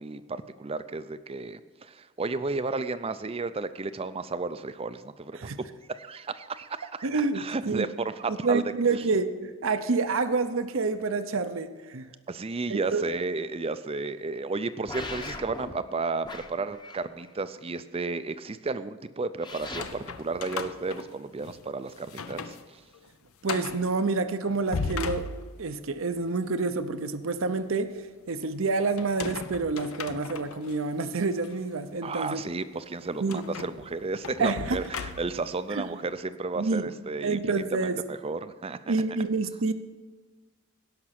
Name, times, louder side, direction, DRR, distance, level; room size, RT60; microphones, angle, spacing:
voice 1, 0.0-5.5 5.9-7.1 7.3-8.6 12.3-22.8 32.0-37.4 38.1-38.9, right 3 dB, 25° right, 13 dB, 0.5 m, -33 dB
voice 2, 7.0-7.9 8.3-12.1 12.7-13.0 23.4-25.3 25.6-27.9 28.3-32.4 33.2-33.4 34.4-34.8 35.7-35.8 36.6-36.9 37.2-38.0 38.9-39.7, right 3 dB, 60° right, 10 dB, 0.7 m, -28 dB
sound 1, 14.9-15.7 16.2-17.3 19.4-19.8, left 2 dB, 20° left, 0.9 m, -39 dB
sound 2, 19.6-21.6 22.0-22.6 22.9-23.0 23.4-23.9 24.5-25.8 29.0-30.7 31.4-31.5 33.3-35.5, left 4 dB, 70° left, 0.6 m, -37 dB
17.0 x 5.9 x 5.9 m, 1.4 s
head